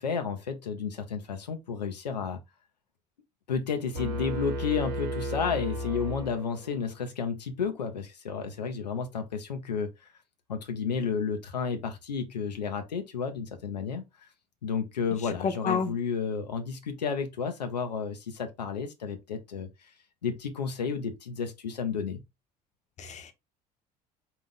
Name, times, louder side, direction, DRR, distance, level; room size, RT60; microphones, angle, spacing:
voice 1, 0.0-2.4 3.5-10.1 10.5-14.3 14.6-19.9 20.2-22.2, left 6 dB, 85° left, 0.5 m, -32 dB
sound 1, 3.9-6.9, equal, 70° right, 1.1 m, -34 dB
voice 2, 15.4-15.9 23.0-23.3, left 5 dB, 35° left, 0.8 m, -29 dB
4.0 x 2.4 x 3.7 m
figure-of-eight pair, 60°, 21 cm